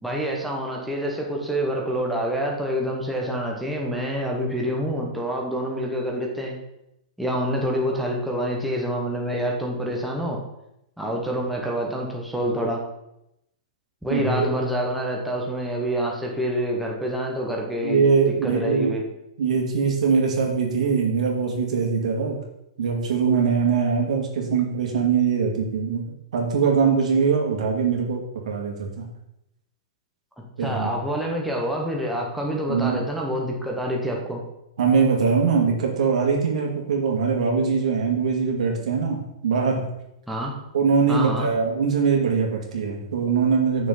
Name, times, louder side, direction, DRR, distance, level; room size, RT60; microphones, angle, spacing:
voice 1, 0.0-6.6 7.2-10.4 11.0-12.8 14.0-18.1 18.4-19.0 30.6-34.4 40.3-40.5 41.1-41.5, equal, ahead, -2 dB, 1.2 m, -27 dB
voice 2, 14.1-14.5 17.8-18.9 19.4-22.4 22.8-26.0 26.3-29.0 30.6-30.9 32.7-33.1 34.8-39.8 40.7-43.9, right 5 dB, 75° right, 0 dB, 2.2 m, -22 dB
8.2 x 6.4 x 3.9 m, 0.84 s
hypercardioid pair, 160°, 4 cm